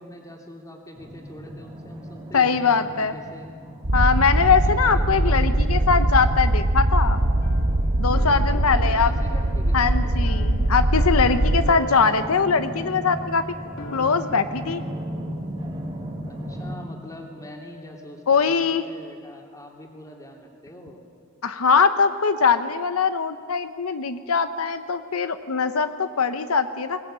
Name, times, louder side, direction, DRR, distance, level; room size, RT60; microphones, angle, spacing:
voice 1, 0.0-3.5 4.4-6.3 8.4-9.9 16.3-21.0, equal, 15° left, 1 dB, 3.1 m, -43 dB
sound 1, 0.9-16.8, equal, 25° right, 3.1 m, -36 dB
voice 2, 2.3-3.1 3.9-7.2 8.0-9.1 9.7-13.6 13.9-14.8 18.3-18.8 21.4-27.0, left 5 dB, 85° left, 10 dB, 0.9 m, -22 dB
sound 2, 3.8-11.7, right 1 dB, 60° right, 1.1 m, -21 dB
sound 3, 7.0-14.4, left 2 dB, 65° left, 2.3 m, -39 dB
21.5 x 20.0 x 9.0 m, 2.1 s
head